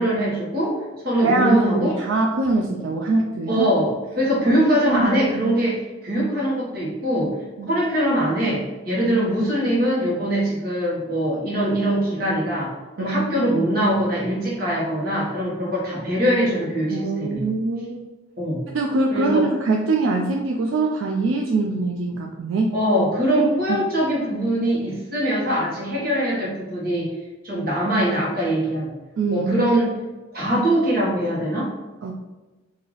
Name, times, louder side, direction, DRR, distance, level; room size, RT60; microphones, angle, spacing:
voice 1, 0.0-1.9 3.5-7.4 7.7-17.4 18.4-18.6 19.1-19.5 22.7-27.1 27.4-28.9 29.3-29.9 30.3-31.7, equal, 50° right, -5 dB, 1.3 m, -22 dB
voice 2, 1.2-3.7 4.4-4.6 4.9-5.3 7.6-7.7 13.0-13.5 16.9-18.0 18.7-22.7 29.2-29.5 32.0-32.1, right 3 dB, 75° right, 1 dB, 0.4 m, -23 dB
3.1 x 2.7 x 3.9 m, 1.2 s
head